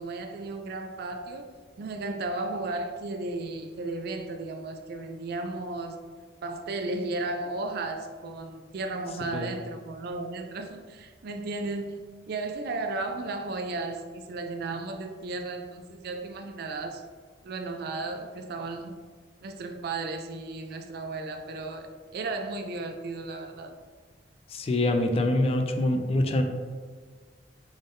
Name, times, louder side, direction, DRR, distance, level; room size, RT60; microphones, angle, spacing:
voice 1, 0.0-1.5 1.8-6.0 6.4-17.0 17.4-18.9 19.4-23.7, right 2 dB, 60° right, 6 dB, 0.4 m, -34 dB
voice 2, 24.5-26.4, left 1 dB, 35° left, 5 dB, 0.3 m, -25 dB
3.7 x 3.5 x 2.5 m, 1.5 s
head